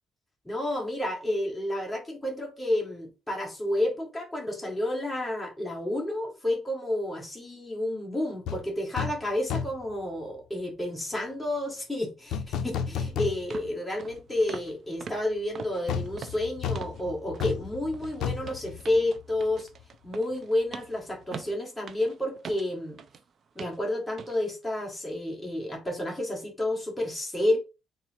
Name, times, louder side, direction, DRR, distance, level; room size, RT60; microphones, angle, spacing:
voice 1, 0.4-19.7 20.0-23.0 23.5-27.6, left 1 dB, 5° left, 1.5 m, -30 dB
sound 1, 8.5-8.6 9.0-9.2 9.5-9.9 12.3-13.7 14.1-14.2 15.9-19.5 19.8-19.9, left 7 dB, 85° left, 0.4 m, -32 dB
sound 2, 12.9-13.0 13.5-13.7 14.0-14.2 14.5-14.7 15.0-17.0 17.3-17.6 17.9-23.2 23.6-23.8 24.2-24.4 24.8-24.9, right 6 dB, 55° right, 0.4 m, -43 dB
3.9 x 2.0 x 4.3 m
cardioid pair, 90°, 0 cm